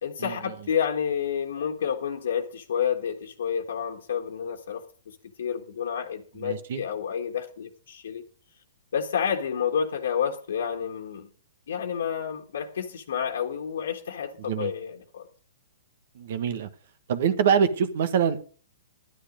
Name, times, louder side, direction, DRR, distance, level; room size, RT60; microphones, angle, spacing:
voice 1, 0.0-8.2 8.9-11.3 11.7-15.3, left 8 dB, 75° left, 1.5 m, -30 dB
voice 2, 6.4-6.8 14.4-14.7 16.1-16.7 17.1-18.4, right 7 dB, 60° right, 1.4 m, -25 dB
11.0 x 9.9 x 5.1 m
hypercardioid pair, 140°, 0 cm